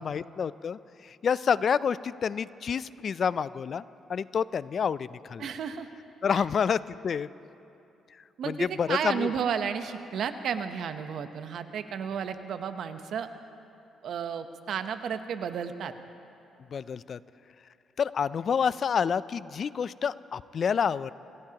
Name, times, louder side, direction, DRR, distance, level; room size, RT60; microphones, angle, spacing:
voice 1, 0.0-3.8 4.1-5.4 6.2-7.3 8.4-9.3 16.7-17.2 18.0-21.1, left 7 dB, 50° left, 17 dB, 0.3 m, -28 dB
voice 2, 5.4-5.9 6.3-6.4 8.4-13.3 14.0-15.9, right 7 dB, 70° right, 9 dB, 0.8 m, -32 dB
26.0 x 16.5 x 2.9 m, 2.8 s
cardioid pair, 90°, 0 cm